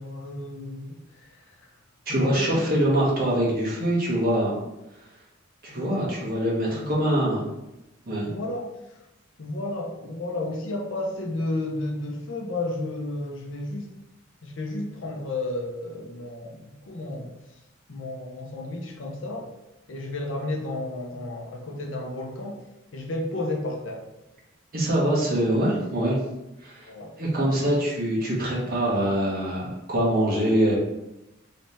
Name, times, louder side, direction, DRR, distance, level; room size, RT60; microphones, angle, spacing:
voice 1, 0.0-1.7 2.1-2.7 5.7-6.4 6.7-7.4 8.3-9.0 9.4-13.9 14.4-17.6 17.9-19.5 19.9-22.6 22.9-24.1 26.9-27.2, left 2 dB, 70° left, 1 dB, 0.6 m, -33 dB
voice 2, 2.1-4.5 5.6-7.4 8.1-8.3 24.7-26.2 26.6-26.9 27.2-30.8, right 1 dB, 50° right, -5 dB, 1.2 m, -24 dB
3.2 x 2.8 x 3.2 m, 0.94 s
head